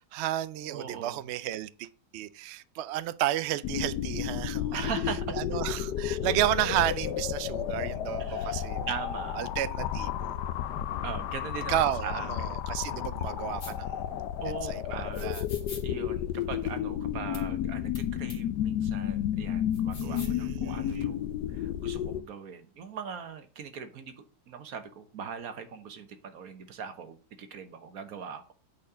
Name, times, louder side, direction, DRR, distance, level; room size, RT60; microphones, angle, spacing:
voice 1, 0.1-1.9 2.1-4.8 5.4-8.9 9.4-10.5 11.7-14.0 14.7-15.4 20.0-21.1, right 13 dB, 80° right, 0.6 m, -32 dB
voice 2, 0.7-1.2 4.7-5.4 8.2-9.4 11.0-12.5 14.4-15.3 15.8-28.5, right 6 dB, 65° right, 1.5 m, -40 dB
sound 1, 3.6-22.2, left 10 dB, 90° left, 1.2 m, -32 dB
sound 2, 13.6-13.8 15.1-15.8 17.3-17.4 18.0-18.1 18.3-18.4 19.7-20.4, left 4 dB, 45° left, 1.8 m, -44 dB
8.5 x 4.3 x 6.8 m
omnidirectional pair, 1.7 m